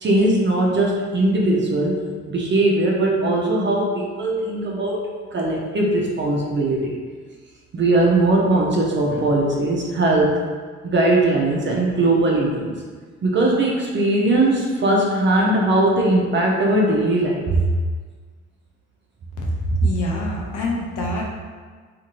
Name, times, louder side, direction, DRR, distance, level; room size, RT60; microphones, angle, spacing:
voice 1, 0.0-2.0 2.3-5.0 5.3-7.0 7.7-10.4 10.8-12.8 13.2-17.7, right 2 dB, 40° right, -2 dB, 0.5 m, -19 dB
voice 2, 19.4-21.2, right 1 dB, 85° left, -2 dB, 0.7 m, -24 dB
2.6 x 2.5 x 2.9 m, 1.5 s
cardioid pair, 90°, 30 cm